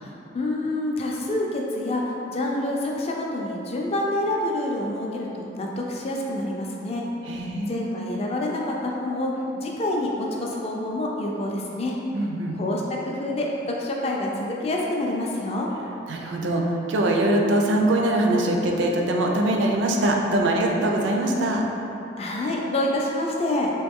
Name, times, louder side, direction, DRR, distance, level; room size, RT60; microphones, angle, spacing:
voice 1, 0.0-2.0 2.3-7.0 7.7-9.3 9.6-12.0 12.5-15.7 22.2-23.7, left 1 dB, 30° left, -1 dB, 0.4 m, -27 dB
voice 2, 7.3-7.7 12.1-12.6 16.1-21.7, right 1 dB, 70° right, 1 dB, 0.4 m, -22 dB
3.1 x 3.0 x 3.5 m, 2.9 s
head